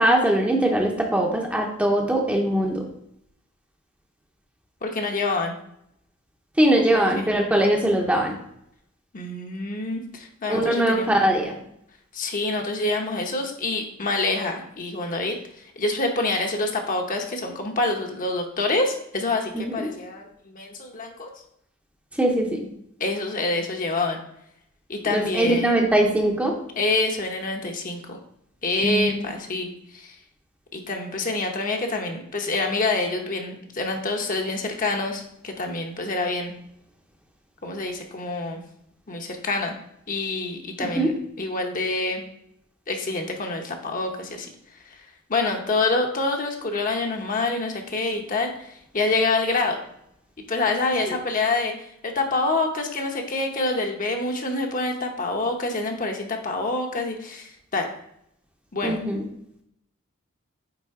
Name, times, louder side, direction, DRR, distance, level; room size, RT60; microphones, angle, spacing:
voice 1, 0.0-2.9 6.6-8.4 10.5-11.6 19.5-19.9 22.1-22.7 25.1-26.5 28.8-29.1 41.0-41.1 58.8-59.2, right 1 dB, 5° right, 1 dB, 0.8 m, -21 dB
voice 2, 4.8-5.5 6.9-7.3 9.1-11.1 12.1-21.3 23.0-24.2 24.9-25.8 26.8-28.2 28.6-30.2 30.7-36.5 37.6-38.6 39.1-39.7 40.1-42.2 42.9-44.5 44.9-45.0 45.3-49.8 50.5-57.9 58.7-59.0, left 2 dB, 40° left, 2 dB, 1.0 m, -27 dB
9.0 x 3.7 x 3.7 m, 0.75 s
head